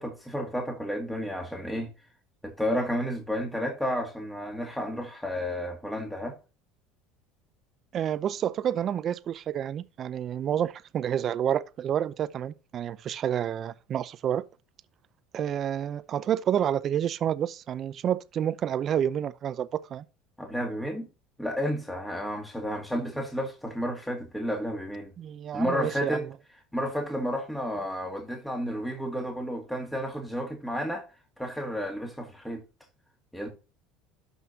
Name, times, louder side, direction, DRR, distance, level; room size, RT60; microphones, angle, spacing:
voice 1, 0.0-1.9 2.4-6.4 20.4-21.1 21.4-25.1 25.5-26.3 26.7-31.1 31.4-32.6 33.3-33.5, equal, 5° left, 2.1 m, -31 dB
voice 2, 7.9-14.4 15.3-20.1 25.2-26.3, right 9 dB, 45° right, 0.6 m, -29 dB
12.5 x 5.4 x 2.8 m
hypercardioid pair, 80°, 0 cm